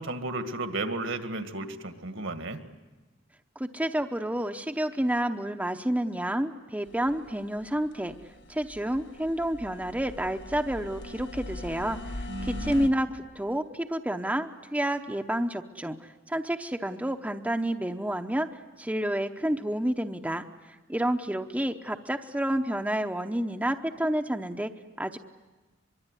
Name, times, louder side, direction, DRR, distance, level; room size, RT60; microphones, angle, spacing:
voice 1, 0.0-2.6 12.3-12.9, right 2 dB, 70° right, 8 dB, 2.1 m, -34 dB
voice 2, 3.6-8.1 8.5-18.5 18.8-24.7 25.0-25.2, right 1 dB, 5° right, 6 dB, 0.8 m, -29 dB
sound 1, 6.9-12.9, left 1 dB, 60° left, 1.7 m, -41 dB
23.5 x 23.5 x 9.8 m, 1.2 s
head